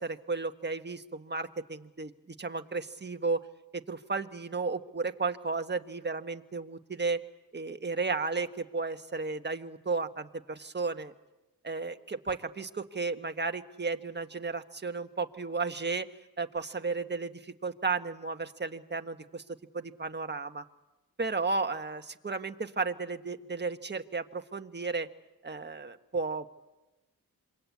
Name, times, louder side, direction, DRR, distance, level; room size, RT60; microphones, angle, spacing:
voice 1, 0.0-3.4 3.7-7.2 7.5-11.1 11.6-16.1 16.4-19.4 19.7-20.6 21.2-25.1 25.4-26.5, right 4 dB, 30° right, 7 dB, 1.5 m, -33 dB
27.0 x 23.5 x 8.5 m, 1.0 s
cardioid pair, 75°, 37 cm